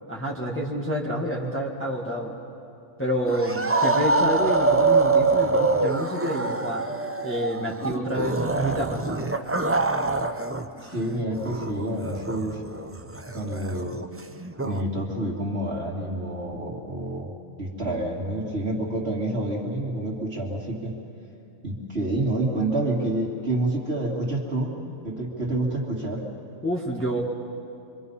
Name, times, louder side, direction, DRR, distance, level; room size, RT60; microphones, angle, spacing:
voice 1, 0.0-2.3 3.0-6.8 7.2-9.3 26.6-27.2, right 1 dB, 10° left, -3 dB, 1.6 m, -28 dB
sound 1, 3.3-10.7 10.9-14.8, right 3 dB, 20° right, 0.3 m, -25 dB
voice 2, 10.8-12.6 13.3-14.0 14.6-17.3 17.6-20.9 21.6-24.8 25.0-26.2, right 1 dB, 45° right, -5 dB, 2.7 m, -28 dB
25.5 x 24.5 x 5.5 m, 2.6 s
omnidirectional pair, 1.5 m